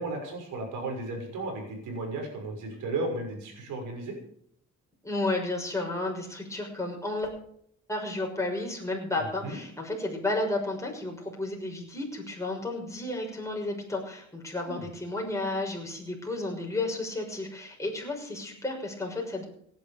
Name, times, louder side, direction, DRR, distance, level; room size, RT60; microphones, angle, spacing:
voice 1, 0.0-4.1 9.2-9.6 14.6-14.8, right 2 dB, 85° right, 3 dB, 6.0 m, -35 dB
voice 2, 5.0-7.3 7.9-19.5, left 2 dB, 10° left, 0 dB, 6.2 m, -32 dB
17.0 x 10.5 x 5.2 m, 0.68 s
cardioid pair, 90°, 30 cm